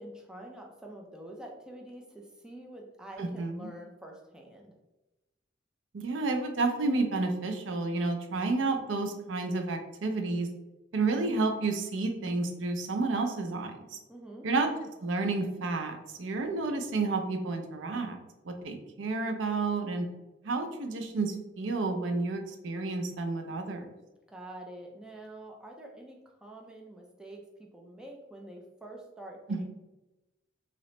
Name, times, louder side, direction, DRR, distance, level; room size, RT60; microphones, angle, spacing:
voice 1, 0.0-4.7 14.1-14.5 24.3-27.4 27.7-29.7, right 1 dB, 5° right, 0 dB, 0.4 m, -46 dB
voice 2, 3.2-3.7 5.9-10.5 10.9-14.0 14.4-14.7 15.0-18.2 18.4-20.1 20.4-23.9 29.5-29.7, right 3 dB, 80° right, 5 dB, 0.5 m, -30 dB
2.9 x 2.8 x 3.1 m, 1.0 s
head